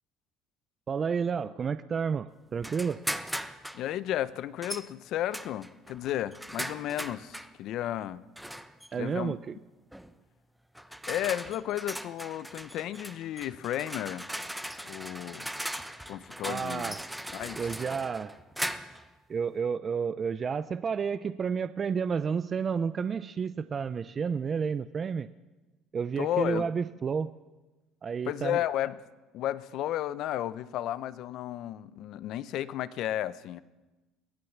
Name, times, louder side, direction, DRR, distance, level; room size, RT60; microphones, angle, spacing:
voice 1, 0.9-3.0 8.9-9.6 16.5-17.1 17.6-18.4 19.3-25.3 25.9-27.3 28.0-28.6, right 6 dB, 35° right, 13 dB, 0.6 m, -31 dB
sound 1, 2.6-3.8 4.6-4.9 5.3-7.5 8.4-8.9 9.9-10.1 10.7-19.1, equal, 5° right, 1.1 m, -39 dB
voice 2, 3.7-8.2 9.0-9.3 11.1-14.3 14.8-15.5 16.1-16.9 17.3-17.6 26.2-26.7 28.3-29.0 29.3-33.6, left 12 dB, 65° left, 16 dB, 0.8 m, -33 dB
23.0 x 16.5 x 7.3 m, 1.1 s
supercardioid pair, 90°, 0 cm